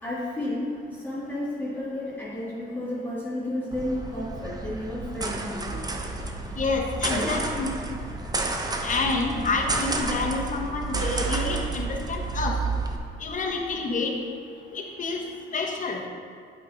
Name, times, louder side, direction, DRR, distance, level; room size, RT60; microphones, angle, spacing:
voice 1, 0.0-5.9 7.1-7.4, left 1 dB, 10° left, -8 dB, 1.9 m, -32 dB
sound 1, 3.7-13.0, right 3 dB, 20° right, 0.7 m, -31 dB
voice 2, 6.6-7.7 8.8-12.6 13.2-14.1 14.7-15.2 15.5-16.0, left 3 dB, 40° left, 0 dB, 1.1 m, -28 dB
8.3 x 5.3 x 4.0 m, 2.2 s
cardioid pair, 90°, 20 cm